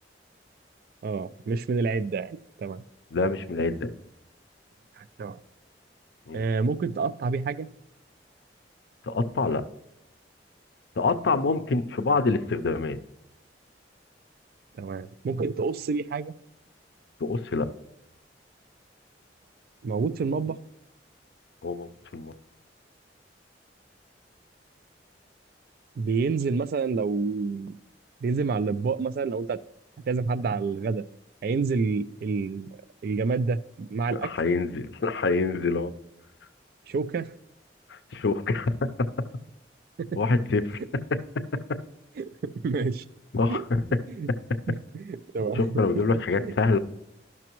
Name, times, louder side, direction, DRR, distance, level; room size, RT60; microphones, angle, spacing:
voice 1, 1.0-2.8 5.0-5.4 6.3-7.7 14.8-16.3 19.8-20.6 26.0-27.8 28.2-29.6 30.1-31.0 31.4-34.3 36.9-37.3 40.0-40.2 42.2-43.0 43.5-43.6 44.1-44.3 44.7-45.8 46.4-46.5, right 4 dB, 55° right, 17 dB, 0.3 m, -28 dB
voice 2, 3.1-3.9 6.3-6.4 9.1-9.6 11.0-13.0 17.2-17.7 21.6-22.3 34.1-35.9 37.9-38.8 40.2-40.8 43.3-43.8 45.5-46.8, left 3 dB, 70° left, 11 dB, 0.5 m, -26 dB
12.0 x 5.9 x 3.0 m, 0.86 s
head